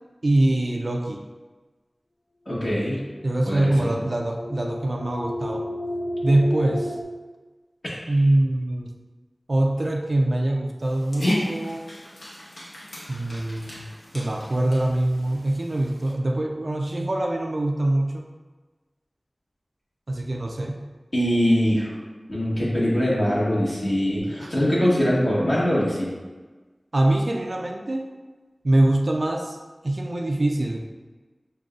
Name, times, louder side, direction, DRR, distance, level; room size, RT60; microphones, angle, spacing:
voice 1, 0.2-1.2 3.2-5.7 6.2-6.9 8.1-8.9 9.5-11.9 13.1-13.9 14.1-18.2 20.1-20.8 24.2-24.5 26.9-28.1 28.6-29.6 29.8-30.8, right 1 dB, 60° right, 1 dB, 0.4 m, -23 dB
voice 2, 2.4-3.0 3.4-3.9 21.1-21.9 22.3-26.1, equal, 55° left, -8 dB, 1.4 m, -22 dB
sound 1, 3.1-7.0, left 1 dB, 40° left, 0.3 m, -32 dB
Dog, 10.8-16.1, left 1 dB, 75° left, 0.9 m, -33 dB
6.4 x 2.3 x 2.4 m, 1.3 s
wide cardioid pair, 65°, 0 cm